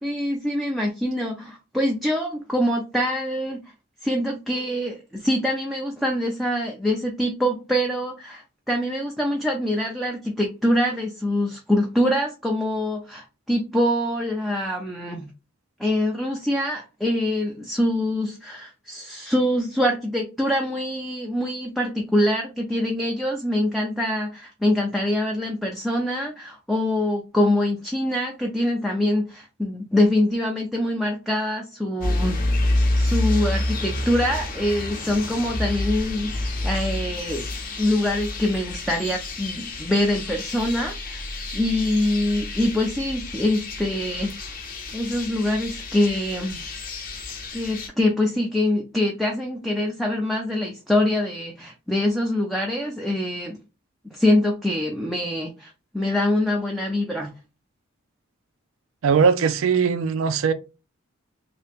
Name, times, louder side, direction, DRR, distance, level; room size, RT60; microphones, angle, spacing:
voice 1, 0.0-3.6 4.0-15.3 15.8-32.4 33.0-37.5 37.8-41.2 41.5-44.3 44.9-46.7 47.5-53.6 54.1-57.3, left 1 dB, ahead, 0.4 m, -24 dB
sound 1, 32.0-47.9, left 2 dB, 40° left, 0.8 m, -28 dB
voice 2, 59.0-60.5, right 6 dB, 70° right, 0.4 m, -20 dB
2.8 x 2.8 x 3.5 m
head